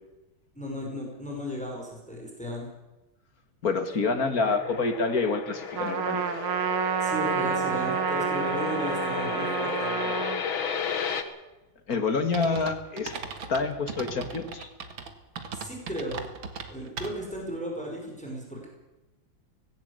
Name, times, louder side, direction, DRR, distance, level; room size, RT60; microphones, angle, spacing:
voice 1, 0.6-2.7 7.0-10.2 15.5-16.2 16.7-18.7, equal, 5° left, -1 dB, 5.3 m, -35 dB
voice 2, 3.6-6.2 10.9-11.1 11.9-13.2 13.5-14.7, left 4 dB, 45° left, 8 dB, 2.3 m, -27 dB
sound 1, 4.4-11.2, left 7 dB, 75° left, 2.4 m, -33 dB
Trumpet, 5.8-10.4, right 7 dB, 90° right, 2.2 m, -29 dB
sound 2, 12.3-17.4, right 5 dB, 70° right, 2.5 m, -38 dB
19.0 x 16.5 x 8.2 m, 1.1 s
omnidirectional pair, 2.2 m